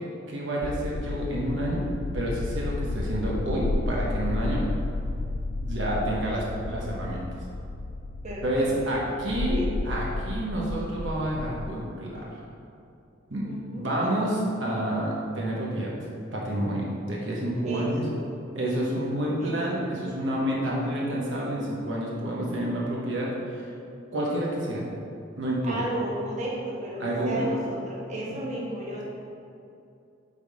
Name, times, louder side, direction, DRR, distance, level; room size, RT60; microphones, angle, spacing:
voice 1, 0.3-1.9 2.1-4.6 5.5-7.3 8.4-12.4 13.3-13.5 13.8-15.9 16.3-18.0 18.5-23.6 24.1-24.9 25.4-25.8 27.0-27.5 28.3-28.4, right 1 dB, 65° right, -4 dB, 1.2 m, -29 dB
sound 1, 0.6-11.7, left 2 dB, 85° left, 0.4 m, -32 dB
voice 2, 8.2-8.6 9.2-9.7 13.4-13.9 17.6-18.2 19.4-19.8 25.6-29.0, right 1 dB, 35° right, -5 dB, 1.3 m, -34 dB
8.0 x 3.8 x 4.9 m, 2.6 s
head